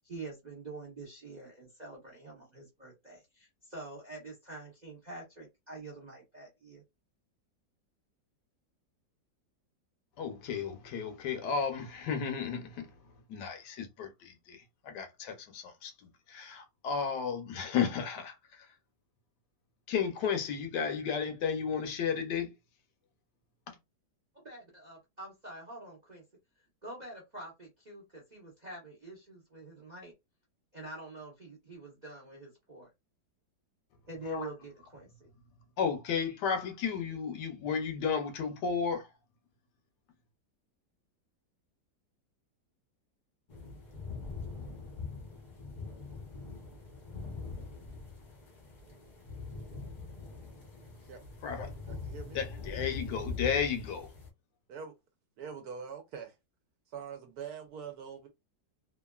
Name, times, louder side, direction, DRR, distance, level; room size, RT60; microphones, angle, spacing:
voice 1, 0.0-6.8 24.3-26.2 26.8-30.1 30.7-32.9 34.1-35.3, right 2 dB, 45° right, 0.6 m, -46 dB
voice 2, 10.2-12.9 13.3-15.9 16.3-18.7 19.9-22.5 23.7-23.8 34.2-34.5 35.8-39.1 51.4-51.7 52.3-54.1, left 6 dB, 75° left, 1.2 m, -33 dB
sound 1, 43.5-54.3, left 4 dB, 45° left, 0.6 m, -43 dB
voice 3, 51.9-52.4 54.7-54.9 55.4-56.3 56.9-58.3, right 6 dB, 70° right, 1.0 m, -43 dB
2.9 x 2.4 x 2.2 m
omnidirectional pair, 1.9 m